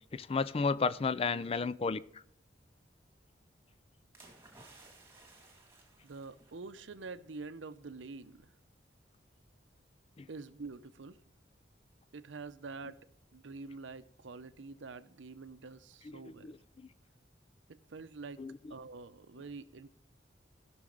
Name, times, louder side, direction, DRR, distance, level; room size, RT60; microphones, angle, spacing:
voice 1, 0.1-2.0 10.2-10.3 16.3-16.5 16.8-16.9 18.4-18.5, left 4 dB, 30° left, 0.4 m, -32 dB
sound 1, 4.1-7.2 7.5-7.7, right 2 dB, 15° right, 2.2 m, -59 dB
voice 2, 6.0-8.5 10.3-11.2 12.1-13.0 13.3-16.5 17.7-18.4 18.7-19.9, right 4 dB, 90° right, 0.7 m, -46 dB
16.0 x 6.3 x 3.8 m
head